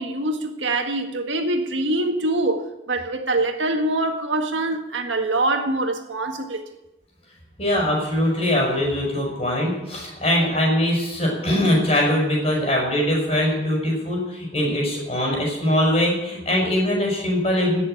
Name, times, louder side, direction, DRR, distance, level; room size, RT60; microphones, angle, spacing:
voice 1, 0.0-6.6, right 2 dB, 85° right, 1.8 m, -24 dB
voice 2, 7.6-17.8, left 1 dB, 30° left, 6.3 m, -22 dB
17.0 x 6.8 x 9.3 m
head